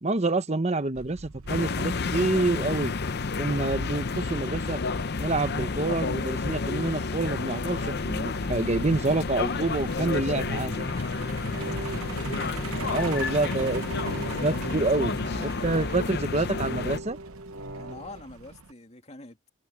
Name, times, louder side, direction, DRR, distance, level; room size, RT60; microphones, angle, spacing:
voice 1, 0.0-2.9 3.4-4.8 5.2-10.9 12.1-12.4 12.9-14.1 14.4-17.2, right 2 dB, 30° right, 0.9 m, -27 dB
Truck, 0.9-18.7, right 5 dB, 85° right, 0.8 m, -43 dB
sound 1, 1.5-17.0, left 4 dB, 50° left, 0.7 m, -30 dB
voice 2, 11.0-11.5 13.0-14.6 17.7-19.5, left 2 dB, 30° left, 2.6 m, -47 dB
sound 2, 11.2-15.6 16.5-18.2, right 1 dB, 70° right, 3.0 m, -40 dB
head